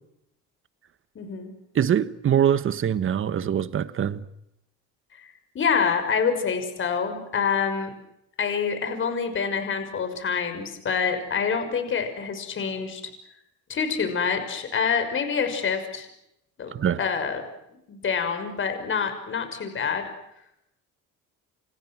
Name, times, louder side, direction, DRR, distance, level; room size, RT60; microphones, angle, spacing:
voice 1, 1.1-1.5 5.2-7.9 8.4-13.0 13.7-16.1 16.6-16.7 17.0-17.4 17.9-20.0, left 6 dB, 40° left, 6.0 m, -26 dB
voice 2, 1.7-4.2 16.7-17.0, right 9 dB, 40° right, 1.5 m, -23 dB
29.0 x 28.5 x 6.3 m
cardioid pair, 120°, 31 cm